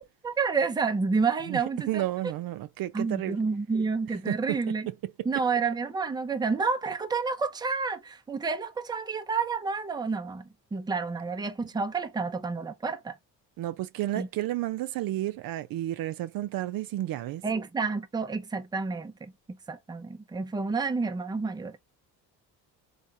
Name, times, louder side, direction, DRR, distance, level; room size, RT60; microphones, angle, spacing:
voice 1, 0.2-2.0 2.9-4.9 5.2-13.2 14.1-14.3 17.4-21.8, right 4 dB, 10° right, 0.5 m, -29 dB
voice 2, 1.9-3.4 4.3-4.6 13.6-17.4, right 14 dB, 60° right, 0.5 m, -31 dB
3.4 x 2.4 x 2.7 m
supercardioid pair, 80°, 40 cm